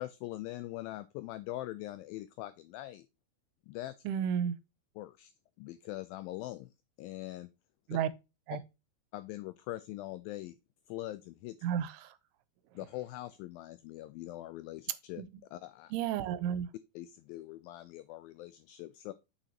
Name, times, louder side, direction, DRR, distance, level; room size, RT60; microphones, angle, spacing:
voice 1, 0.0-3.1 3.7-4.0 5.0-5.3 5.6-6.7 7.0-7.5 9.1-10.6 10.9-11.6 12.8-15.2 15.5-15.9 17.0-19.1, left 16 dB, 90° left, 2.0 m, -42 dB
voice 2, 4.1-4.5 7.9-8.1 8.5-8.6 11.6-12.1 15.2-15.3 15.9-16.7, right 9 dB, 85° right, 2.6 m, -32 dB
6.6 x 6.1 x 2.8 m
omnidirectional pair, 4.7 m